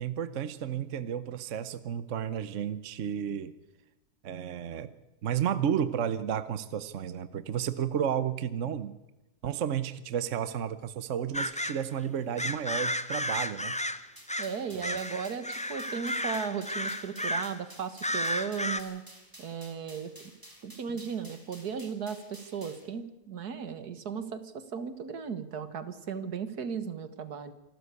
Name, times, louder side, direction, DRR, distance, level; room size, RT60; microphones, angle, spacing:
voice 1, 0.0-3.5 4.2-4.9 5.2-8.9 9.4-13.7 14.7-15.0, right 9 dB, 55° right, 14 dB, 1.1 m, -32 dB
sound 1, 11.3-11.8 12.4-14.6 14.8-17.6 18.0-18.8, left 1 dB, 10° left, 0.5 m, -33 dB
sound 2, 14.2-22.9, right 1 dB, 10° right, 3.6 m, -52 dB
voice 2, 14.4-19.0 19.4-20.3 20.6-27.5, right 6 dB, 70° right, 12 dB, 2.0 m, -36 dB
26.5 x 13.0 x 8.3 m, 0.99 s
omnidirectional pair, 1.7 m